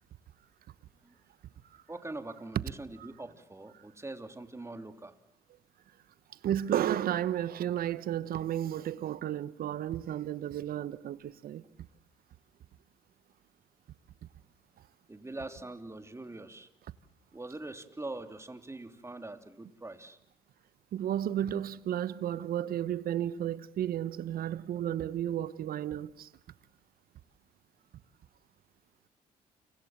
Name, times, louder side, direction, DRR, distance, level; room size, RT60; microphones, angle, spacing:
voice 1, 1.9-5.1 15.1-16.7 17.3-20.2, right 2 dB, 15° right, 3.3 m, -43 dB
voice 2, 6.4-11.6 20.9-26.3, right 11 dB, 70° right, 1.2 m, -33 dB
29.5 x 25.0 x 7.5 m
supercardioid pair, 60°, 16 cm